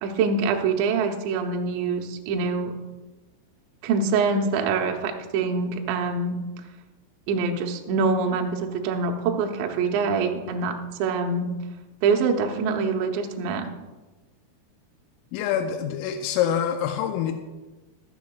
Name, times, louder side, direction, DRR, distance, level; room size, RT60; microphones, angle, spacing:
voice 1, 0.0-2.7 3.8-6.4 7.3-10.7 11.0-11.5 12.0-13.7, right 4 dB, 75° right, 3 dB, 2.8 m, -25 dB
voice 2, 15.3-17.3, left 9 dB, 85° left, 5 dB, 3.1 m, -25 dB
14.0 x 12.5 x 2.3 m, 1.2 s
omnidirectional pair, 5.9 m